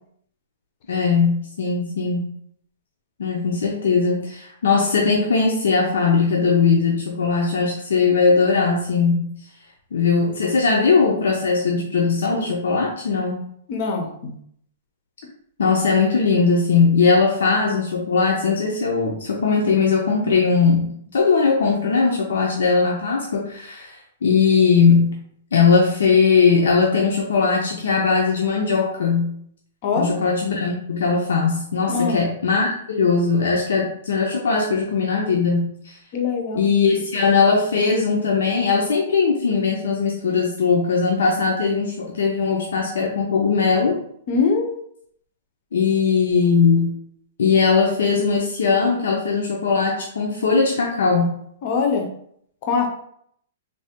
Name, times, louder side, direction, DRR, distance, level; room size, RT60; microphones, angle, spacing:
voice 1, 0.9-2.3 3.2-9.3 9.9-13.5 15.6-25.1 25.5-29.3 29.9-36.0 36.5-44.0 45.7-46.9 47.4-51.3, left 5 dB, 90° left, 0 dB, 0.5 m, -19 dB
voice 2, 13.7-14.4 29.8-30.1 31.9-32.2 36.1-36.7 44.3-44.8 51.6-52.1 52.6-52.9, left 5 dB, 35° left, 3 dB, 0.4 m, -22 dB
3.2 x 2.1 x 2.8 m, 0.67 s
hypercardioid pair, 170°, 0 cm